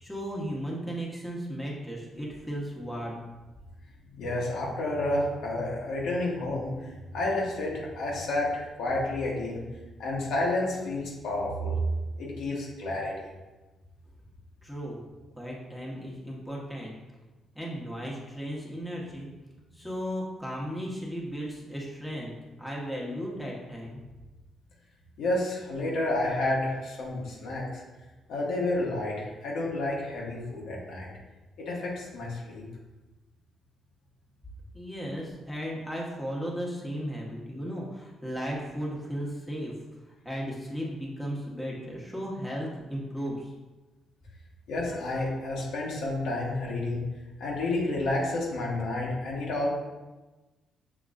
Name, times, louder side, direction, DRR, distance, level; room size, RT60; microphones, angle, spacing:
voice 1, 0.0-3.2 14.6-15.0 15.4-16.9 17.5-19.3 19.7-22.3 22.6-24.0 34.7-39.7 40.2-43.5, equal, 5° left, -4 dB, 1.1 m, -35 dB
voice 2, 4.1-9.6 10.0-11.8 12.2-13.3 25.2-27.8 28.3-31.1 31.6-32.6 44.7-47.0 47.4-49.7, left 2 dB, 75° left, -3 dB, 1.1 m, -30 dB
5.9 x 2.9 x 2.5 m, 1.2 s
cardioid pair, 90°, 0 cm